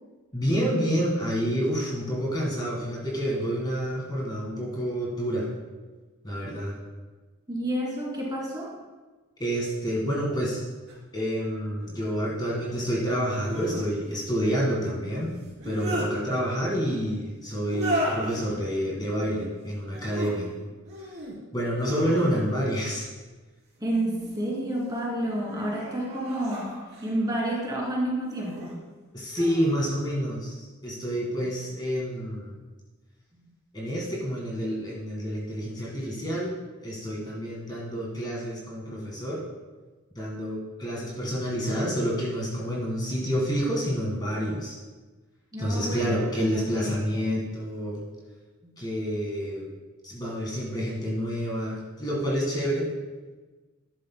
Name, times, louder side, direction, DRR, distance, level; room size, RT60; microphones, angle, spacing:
voice 1, 0.3-5.5 6.2-6.8 9.4-10.6 11.1-15.3 15.6-20.5 21.0-21.2 21.5-23.1 29.1-32.6 33.7-36.5 36.8-39.4 40.1-44.8 45.6-48.0 48.8-49.7 50.0-52.9, equal, 20° left, -4 dB, 1.7 m, -28 dB
voice 2, 7.5-8.7 23.8-26.7 27.0-28.7 45.5-47.1 48.6-48.7, right 1 dB, 20° right, -4 dB, 2.6 m, -30 dB
sound 1, 10.9-11.0 13.3-13.9 15.4-16.1 17.6-18.4 19.9-20.3 20.8-21.4 21.8-22.7 23.9-24.5 25.1-27.2 28.2-28.7 29.3-29.8, equal, 55° right, 3.3 m, -34 dB
12.5 x 11.0 x 2.2 m, 1.3 s
head